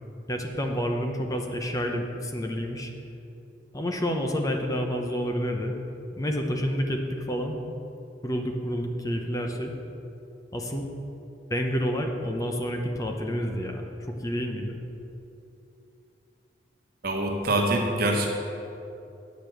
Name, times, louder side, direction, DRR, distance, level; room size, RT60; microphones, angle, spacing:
voice 1, 0.3-2.9 3.7-5.7 6.1-7.6 8.2-9.7 10.5-10.9 11.5-13.9 14.2-14.8, equal, 20° left, 3 dB, 0.7 m, -29 dB
voice 2, 17.0-18.3, right 1 dB, 60° right, 1 dB, 1.3 m, -24 dB
9.1 x 5.1 x 7.6 m, 2.8 s
head